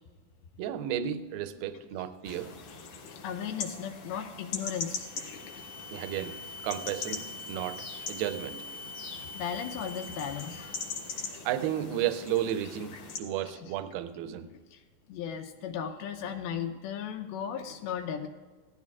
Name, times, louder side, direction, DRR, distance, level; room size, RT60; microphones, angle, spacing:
voice 1, 0.6-2.6 5.9-8.7 11.1-14.5, right 10 dB, 85° right, 2.4 m, -33 dB
sound 1, 2.2-13.2, left 5 dB, 65° left, 2.3 m, -41 dB
voice 2, 3.0-5.6 9.3-11.4 14.5-14.8 15.1-18.3, left 8 dB, 90° left, 2.6 m, -37 dB
sound 2, 4.8-11.4, left 2 dB, 30° left, 0.4 m, -45 dB
16.5 x 12.5 x 2.4 m
omnidirectional pair, 4.4 m